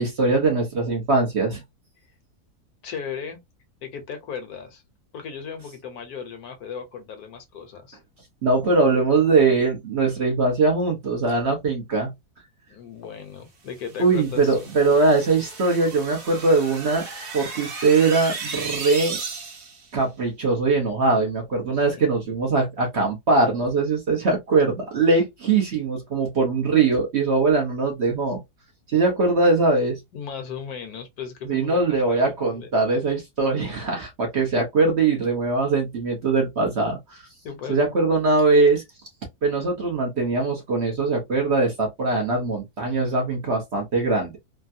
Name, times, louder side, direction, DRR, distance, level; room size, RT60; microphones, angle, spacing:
voice 1, 0.0-1.6 8.4-12.1 14.0-17.1 17.3-19.2 19.9-28.4 28.9-30.0 31.4-37.3 37.7-38.8 39.4-44.4, right 3 dB, 50° right, 1.0 m, -21 dB
voice 2, 2.8-3.4 3.8-4.8 5.1-8.0 12.7-14.8 21.7-22.3 30.1-32.7 37.4-37.9, left 7 dB, 70° left, 1.3 m, -36 dB
sound 1, 13.9-19.9, right 4 dB, 70° right, 1.4 m, -35 dB
3.4 x 2.2 x 2.6 m
omnidirectional pair, 1.7 m